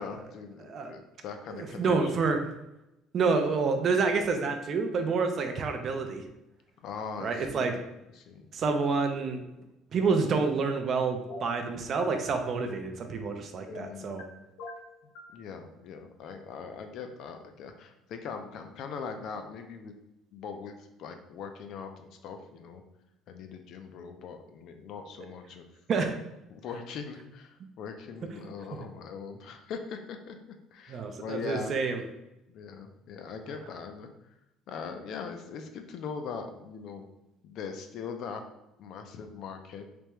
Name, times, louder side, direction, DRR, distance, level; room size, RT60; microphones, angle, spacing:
voice 1, 0.0-2.3 5.5-5.6 6.8-7.8 8.1-8.5 13.7-14.3 15.0-19.9 20.3-22.8 23.3-25.7 26.5-30.4 30.7-31.8 32.5-34.1 34.7-37.1 37.4-38.4 38.8-39.9, left 5 dB, 50° left, 6 dB, 0.4 m, -41 dB
voice 2, 1.8-2.4 3.1-6.3 7.2-7.8 8.5-9.4 9.9-14.3 25.9-26.2 28.3-28.5 30.9-32.0, right 4 dB, 35° right, 6 dB, 0.4 m, -28 dB
sound 1, 11.3-11.6 13.7-14.3 14.6-15.4, left 2 dB, 80° left, 0.9 m, -42 dB
3.4 x 3.3 x 3.0 m, 0.90 s
cardioid pair, 160°, 0 cm